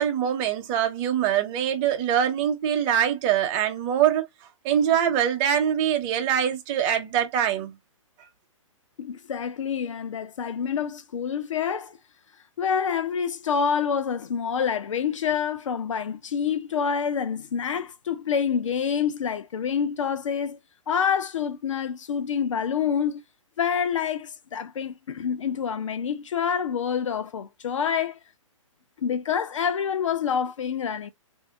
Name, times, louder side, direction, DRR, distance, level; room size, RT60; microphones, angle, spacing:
voice 1, 0.0-4.3 4.6-7.8, right 9 dB, 30° right, 0.9 m, -23 dB
voice 2, 9.0-12.0 12.6-20.6 20.9-23.2 23.6-28.2 29.0-31.1, left 7 dB, 65° left, 0.7 m, -27 dB
3.3 x 2.8 x 2.6 m
figure-of-eight pair, 130°, 17 cm